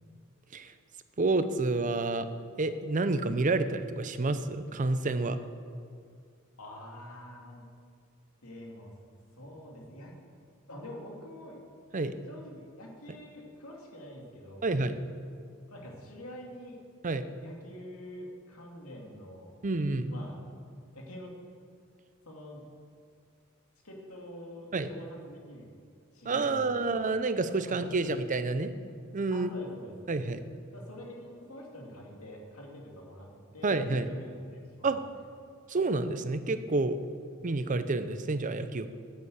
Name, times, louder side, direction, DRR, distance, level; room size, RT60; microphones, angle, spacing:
voice 1, 1.2-2.3 2.6-5.4 11.9-12.1 14.6-15.0 17.0-17.2 19.6-20.1 24.7-24.9 26.2-28.7 29.1-29.5 30.1-30.4 33.6-34.1 34.8-35.0 35.7-37.0 37.4-38.9, right 3 dB, 35° right, 11 dB, 0.6 m, -29 dB
voice 2, 6.6-7.7 8.4-8.9 9.4-10.1 10.7-11.6 12.3-14.8 15.7-16.8 17.4-19.5 20.1-20.4 20.9-21.3 22.2-22.7 23.8-25.7 26.1-26.9 27.6-28.1 29.3-30.1 30.7-34.9, left 1 dB, 85° left, -1 dB, 2.6 m, -46 dB
10.0 x 8.2 x 8.0 m, 2.3 s
head